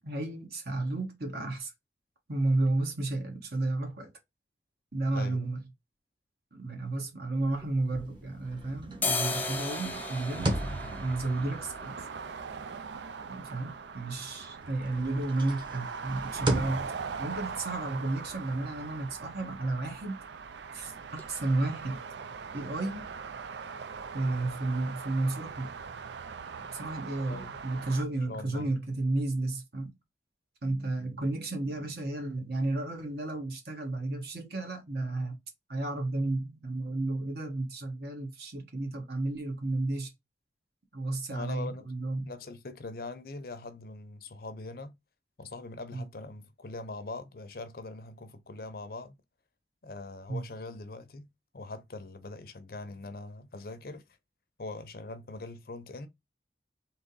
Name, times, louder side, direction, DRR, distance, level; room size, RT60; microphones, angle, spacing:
voice 1, 0.0-1.7 2.3-4.1 4.9-5.6 6.5-12.0 13.2-16.9 17.2-20.2 20.7-22.0 22.5-23.1 24.1-25.7 26.7-29.9 30.6-35.4 35.7-40.1 40.9-42.3 45.9-46.1 50.3-50.4, right 2 dB, 60° right, 1.5 m, -32 dB
sound 1, 7.4-8.5 8.8-16.6 16.9-17.0 17.2-17.8 18.1-18.3 18.6-18.8 19.1-19.8 20.2-20.3 20.8-20.9 21.2-21.3, left 3 dB, 10° left, 0.5 m, -38 dB
sound 2, 7.8-14.3 14.6-20.0, right 1 dB, 25° right, 1.0 m, -39 dB
sound 3, 9.1-28.0, right 5 dB, 80° right, 0.4 m, -41 dB
voice 2, 28.3-28.7 41.3-41.9 42.2-44.9 45.4-49.1 49.8-51.3 51.5-54.1 54.6-56.1, left 2 dB, 55° left, 0.6 m, -42 dB
3.7 x 2.9 x 3.9 m
head